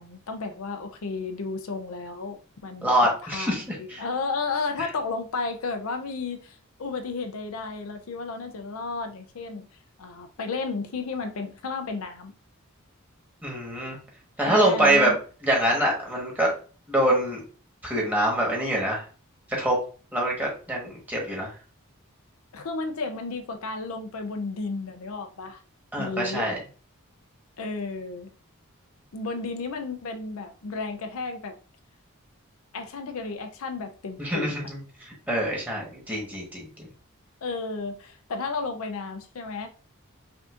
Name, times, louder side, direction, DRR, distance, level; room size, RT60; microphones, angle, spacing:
voice 1, 0.0-9.7 10.0-12.3 14.4-15.2 22.5-25.6 26.0-26.5 27.6-28.3 29.1-31.6 32.7-34.7 37.4-39.7, left 4 dB, 80° left, 0.6 m, -33 dB
voice 2, 2.8-4.0 13.4-14.0 14.4-15.1 15.4-16.5 16.9-17.4 17.8-19.0 19.5-19.8 20.1-21.5 25.9-26.6 34.2-36.9, right 1 dB, 10° right, 1.3 m, -25 dB
5.7 x 2.7 x 2.5 m
head